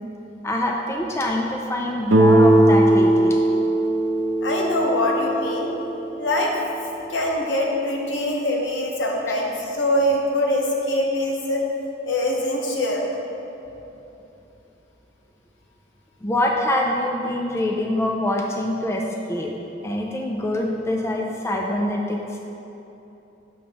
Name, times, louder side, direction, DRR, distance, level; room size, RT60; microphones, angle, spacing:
voice 1, 0.4-3.4 16.2-19.5 19.8-22.4, left 1 dB, 15° left, 0 dB, 0.4 m, -25 dB
Guitar, 2.1-6.9, right 1 dB, 80° right, 0.6 m, -19 dB
voice 2, 4.4-5.7 6.2-6.5 7.1-11.6 12.0-13.1, left 1 dB, 70° left, -1 dB, 0.9 m, -23 dB
7.0 x 6.2 x 3.0 m, 3.0 s
head